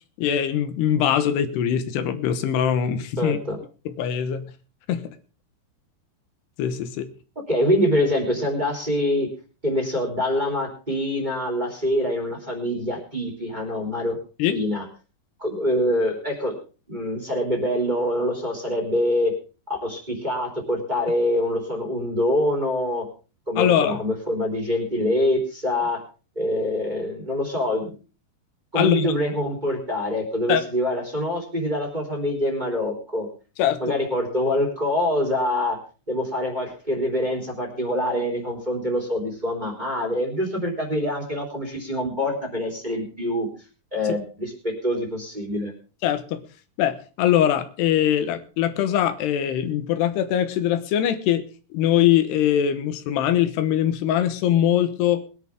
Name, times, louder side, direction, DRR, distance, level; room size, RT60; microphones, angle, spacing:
voice 1, 0.2-3.4 3.9-4.5 4.9-5.1 6.6-7.1 14.4-14.6 23.6-24.0 28.8-29.1 30.5-30.6 33.6-34.0 46.0-46.4 46.8-51.4 51.7-55.2, left 10 dB, 90° left, 10 dB, 3.2 m, -22 dB
voice 2, 3.2-3.6 7.5-9.3 9.6-14.2 14.5-14.8 15.4-16.5 16.9-19.3 19.7-23.0 23.5-26.0 26.3-27.9 28.7-33.3 33.8-35.8 36.1-43.5 43.9-45.7, left 1 dB, 10° right, 1 dB, 3.0 m, -25 dB
21.0 x 11.0 x 3.7 m, 0.35 s
omnidirectional pair, 4.7 m